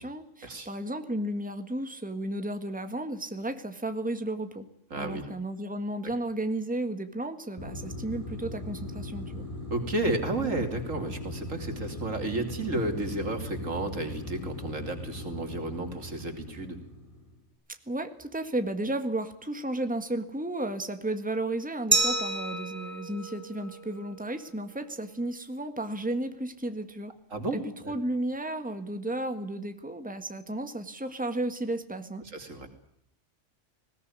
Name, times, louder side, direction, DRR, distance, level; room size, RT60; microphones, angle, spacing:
voice 1, 0.0-4.7 4.9-9.5 17.9-27.1 27.5-27.6 27.9-32.2, right 1 dB, 5° right, 8 dB, 1.7 m, -33 dB
voice 2, 4.9-5.3 9.7-16.8 27.3-27.9 32.3-32.7, right 2 dB, 90° right, 6 dB, 3.4 m, -32 dB
sound 1, 7.6-17.4, left 1 dB, 25° left, 7.0 m, -39 dB
Glass, 21.9-24.6, right 3 dB, 40° right, 2.6 m, -30 dB
20.0 x 18.5 x 9.6 m, 0.76 s
omnidirectional pair, 1.3 m